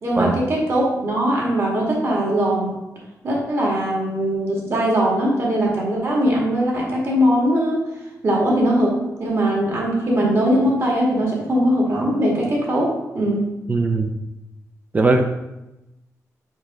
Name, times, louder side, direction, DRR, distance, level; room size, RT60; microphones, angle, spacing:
voice 1, 0.0-2.8 3.2-7.8 8.2-13.5, equal, 50° right, -3 dB, 1.9 m, -20 dB
voice 2, 13.7-14.1 14.9-15.3, right 2 dB, 25° right, 5 dB, 0.4 m, -19 dB
5.2 x 5.0 x 3.7 m, 0.96 s
wide cardioid pair, 145°, 6 cm